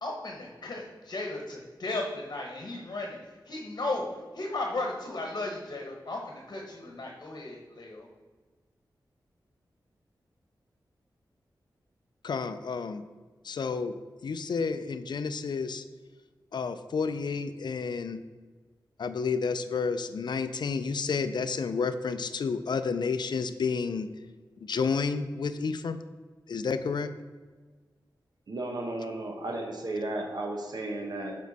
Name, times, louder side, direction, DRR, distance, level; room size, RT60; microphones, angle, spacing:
voice 1, 0.0-3.2 3.5-4.1 4.3-8.1, left 2 dB, 55° left, 0 dB, 1.1 m, -35 dB
voice 2, 12.2-13.0 13.4-14.0 14.2-15.8 16.5-18.2 19.0-24.1 24.6-26.0 26.5-27.1, left 5 dB, 70° left, 11 dB, 0.4 m, -30 dB
voice 3, 28.5-31.3, right 2 dB, 60° right, 2 dB, 0.9 m, -34 dB
7.3 x 4.6 x 4.1 m, 1.4 s
wide cardioid pair, 105°, 8 cm